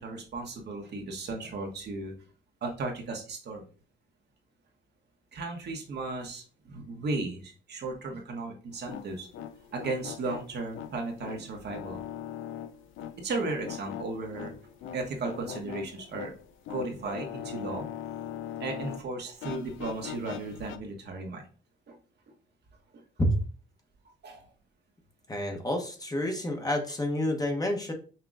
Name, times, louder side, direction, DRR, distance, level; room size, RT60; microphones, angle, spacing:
voice 1, 0.0-2.1 2.6-3.6 5.3-9.3 9.7-12.0 13.2-14.5 14.9-16.3 16.7-17.9 18.6-21.4 21.9-22.0 22.9-23.0 24.2-24.4, right 3 dB, 55° right, 1 dB, 1.2 m, -35 dB
sound 1, 8.7-19.0 19.3-20.8, left 10 dB, 80° left, 0.4 m, -41 dB
voice 2, 25.3-27.9, left 1 dB, 20° left, 3 dB, 0.9 m, -29 dB
5.6 x 2.9 x 2.5 m, 0.38 s
cardioid pair, 90°, 20 cm